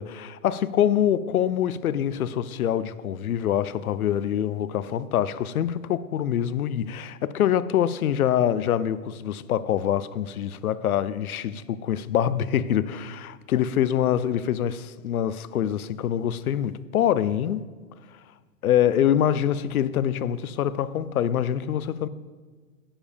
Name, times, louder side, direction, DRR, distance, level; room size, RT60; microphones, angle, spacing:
voice 1, 0.0-17.6 18.6-22.1, left 10 dB, 85° left, 0.6 m, -25 dB
7.2 x 7.0 x 5.2 m
hypercardioid pair, 135°, 42 cm